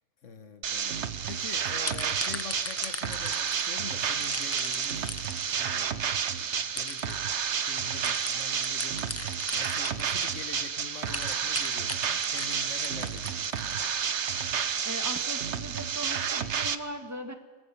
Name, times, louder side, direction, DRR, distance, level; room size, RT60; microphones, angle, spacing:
voice 1, 0.2-5.9 6.4-7.3 7.5-9.0 9.5-13.9, left 5 dB, 75° left, 9 dB, 1.5 m, -45 dB
sound 1, 0.6-16.8, right 7 dB, 65° right, 1.2 m, -30 dB
sound 2, 1.2-1.4 1.8-3.7 4.2-5.6 6.4-6.5 6.8-7.2 8.0-10.5 11.0-13.9, left 2 dB, 15° left, 0.7 m, -38 dB
voice 2, 14.9-17.3, right 1 dB, 15° right, 6 dB, 1.8 m, -39 dB
27.0 x 20.5 x 7.2 m, 1.3 s
omnidirectional pair, 1.3 m